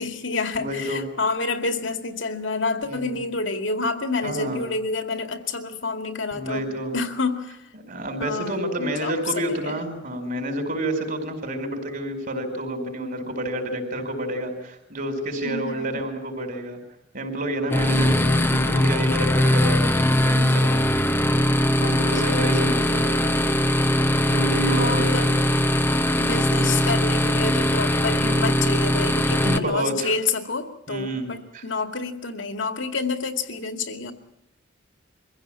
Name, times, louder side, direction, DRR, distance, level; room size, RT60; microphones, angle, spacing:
voice 1, 0.0-7.6 8.2-9.2 9.5-9.8 15.4-15.9 21.8-22.8 24.6-25.3 26.2-34.1, left 3 dB, 75° left, 6 dB, 2.2 m, -28 dB
voice 2, 0.5-1.0 2.9-3.1 4.2-4.6 6.3-6.9 7.9-16.8 17.1-20.8 21.8-23.2 24.3-25.3 26.5-26.7 29.2-30.1 30.9-31.6, right 1 dB, 45° right, 5 dB, 4.9 m, -29 dB
sound 1, 17.7-29.6, left 1 dB, 10° left, 0.8 m, -21 dB
23.5 x 16.0 x 8.9 m, 0.89 s
head